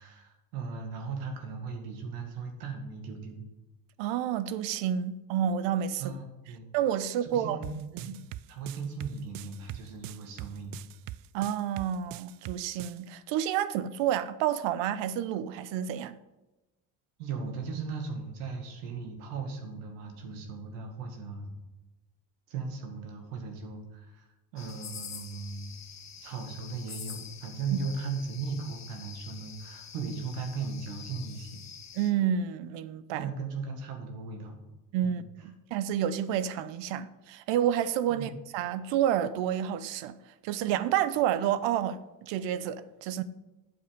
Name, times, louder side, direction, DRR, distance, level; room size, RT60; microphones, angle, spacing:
voice 1, 0.0-3.5 6.0-6.7 7.2-10.8 17.2-21.5 22.5-25.7 26.2-31.6 33.1-34.6 35.0-35.2 38.1-38.4, right 4 dB, 85° right, 2.0 m, -37 dB
voice 2, 4.0-6.1 6.7-7.6 8.1-8.2 11.3-16.1 27.7-27.8 32.0-33.3 34.9-40.2 40.4-43.2, right 10 dB, 70° right, 0.8 m, -29 dB
sound 1, 7.6-13.0, right 14 dB, 50° right, 0.5 m, -42 dB
sound 2, 24.6-32.1, left 7 dB, 35° left, 1.4 m, -46 dB
8.8 x 7.3 x 5.2 m
supercardioid pair, 75°, 46 cm